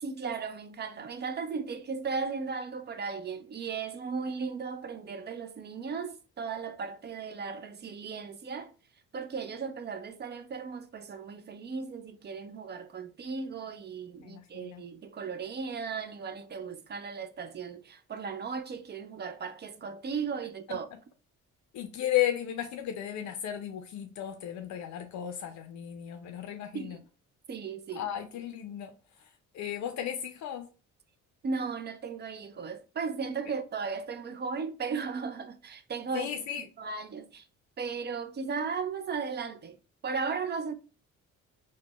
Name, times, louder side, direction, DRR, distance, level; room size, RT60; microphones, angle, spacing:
voice 1, 0.0-8.7 9.1-20.9 26.7-27.0 27.5-28.0 31.4-36.3 36.8-37.5 37.8-39.8 40.0-40.7, right 5 dB, 35° right, 0.4 m, -36 dB
voice 2, 14.2-14.8 21.7-27.0 27.9-28.9 29.2-30.7 36.1-36.6, left 11 dB, 70° left, 0.5 m, -34 dB
3.5 x 2.1 x 2.3 m
cardioid pair, 90°, 30 cm